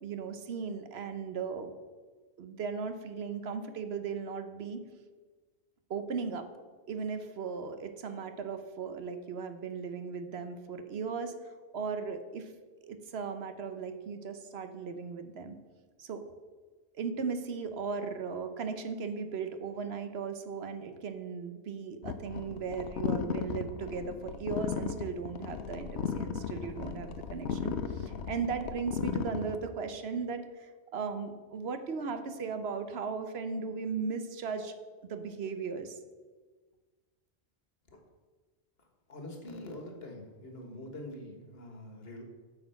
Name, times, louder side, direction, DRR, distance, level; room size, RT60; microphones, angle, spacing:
voice 1, 0.0-1.7 2.4-4.8 5.9-6.5 6.9-12.5 12.8-15.6 16.0-16.3 16.9-34.7 35.0-36.0, right 5 dB, 70° right, 8 dB, 1.0 m, -37 dB
sound 1, 22.0-29.6, left 7 dB, 80° left, 0.9 m, -36 dB
voice 2, 39.1-42.2, left 1 dB, 60° left, 3 dB, 1.8 m, -44 dB
8.1 x 6.7 x 5.7 m, 1.4 s
omnidirectional pair, 1.1 m